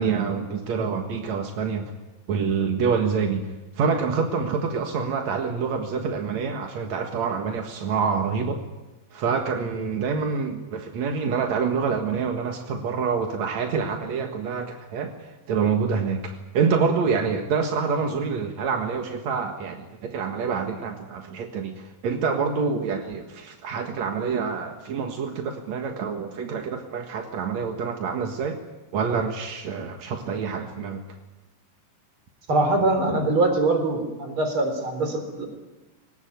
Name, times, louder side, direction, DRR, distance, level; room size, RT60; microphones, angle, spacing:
voice 1, 0.0-1.9 2.3-3.5 3.8-8.6 9.1-28.6 28.9-31.0, right 5 dB, 65° right, 4 dB, 1.8 m, -26 dB
voice 2, 32.5-35.5, right 2 dB, 30° right, 6 dB, 3.9 m, -23 dB
23.0 x 19.0 x 9.4 m, 1.1 s
omnidirectional pair, 5.5 m